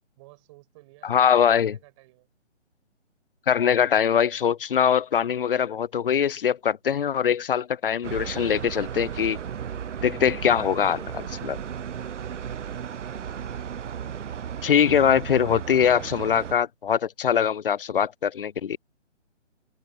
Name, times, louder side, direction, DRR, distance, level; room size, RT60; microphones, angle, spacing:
voice 1, 0.2-2.3, right 23 dB, 25° right, 6.9 m, -54 dB
voice 2, 1.0-1.8 3.5-9.4 10.0-11.6 14.6-18.8, left 8 dB, 50° left, 0.5 m, -22 dB
sound 1, 8.0-16.5, right 8 dB, 80° right, 0.6 m, -35 dB
open air
figure-of-eight pair, 145°, 36 cm